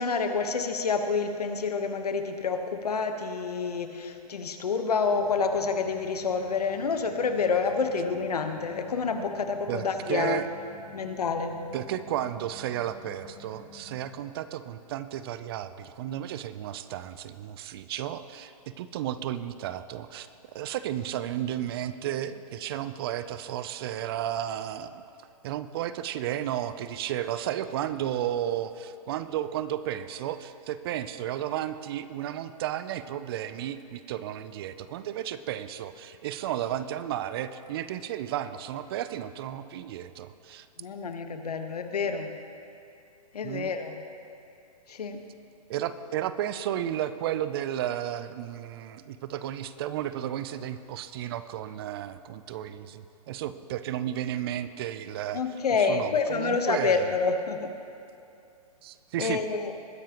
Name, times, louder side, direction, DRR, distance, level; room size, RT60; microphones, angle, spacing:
voice 1, 0.0-10.4 10.9-11.6 40.8-42.3 43.3-44.0 44.9-45.2 55.3-57.7 59.2-59.7, left 5 dB, 75° left, 6 dB, 1.2 m, -28 dB
sound 1, 5.0-14.1, left 3 dB, 35° left, 3.2 m, -50 dB
voice 2, 9.7-10.5 11.7-20.3 20.5-25.0 25.4-40.7 43.4-43.7 45.7-55.4 55.7-57.2 58.8-59.4, right 11 dB, 40° right, 13 dB, 0.5 m, -33 dB
20.5 x 10.0 x 3.0 m, 2.6 s
hypercardioid pair, 130°, 20 cm